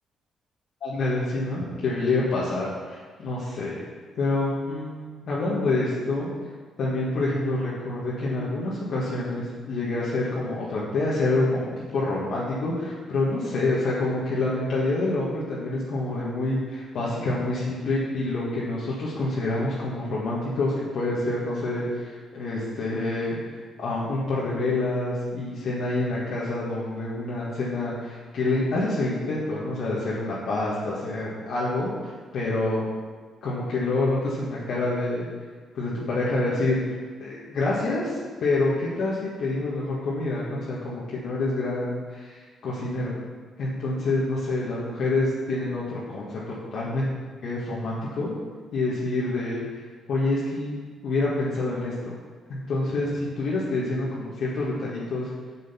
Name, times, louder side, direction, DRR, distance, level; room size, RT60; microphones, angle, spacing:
voice 1, 0.8-3.8 4.2-6.3 6.8-32.8 33.4-35.3 35.8-36.8 37.2-43.1 43.6-47.1 47.4-48.3 48.7-49.8 50.1-50.7 51.0-52.1 52.5-55.3, left 2 dB, 65° left, -7 dB, 1.6 m, -27 dB
7.0 x 6.2 x 5.8 m, 1.5 s
cardioid pair, 90°, 0 cm